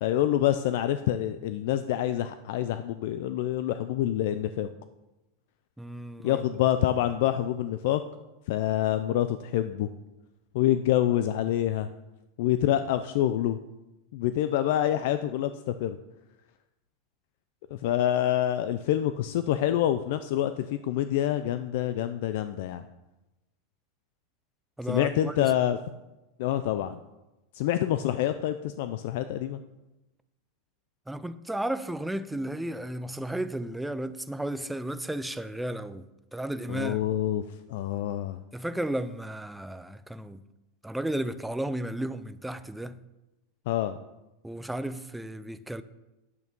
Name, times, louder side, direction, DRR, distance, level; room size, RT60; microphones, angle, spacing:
voice 1, 0.0-4.7 6.2-8.0 8.5-9.9 10.5-11.9 12.4-13.6 14.1-16.0 17.7-22.8 24.9-25.8 26.4-27.0 27.5-29.6 36.7-37.4 37.7-38.4 43.7-44.0, left 12 dB, 60° left, 0.5 m, -26 dB
voice 2, 5.8-6.4 24.8-25.7 31.1-36.1 36.3-37.1 38.5-40.4 40.8-43.0 44.4-45.8, right 1 dB, 5° right, 0.4 m, -33 dB
9.6 x 8.2 x 5.3 m
supercardioid pair, 150°, 0 cm